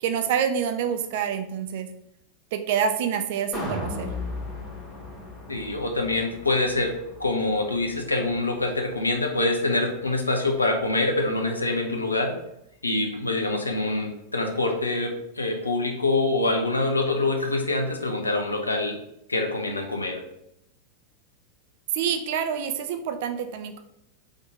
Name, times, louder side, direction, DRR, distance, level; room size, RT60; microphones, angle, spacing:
voice 1, 0.0-1.9 2.5-4.1 21.9-23.8, right 7 dB, 50° right, 8 dB, 0.5 m, -27 dB
sound 1, 3.5-9.7 10.1-10.2, left 2 dB, 20° left, 1.6 m, -37 dB
voice 2, 5.5-6.9 7.2-12.4 12.8-19.0 19.3-20.2, left 2 dB, 80° left, 3 dB, 0.7 m, -25 dB
3.8 x 3.8 x 3.6 m, 0.79 s
figure-of-eight pair, 90°, 0 cm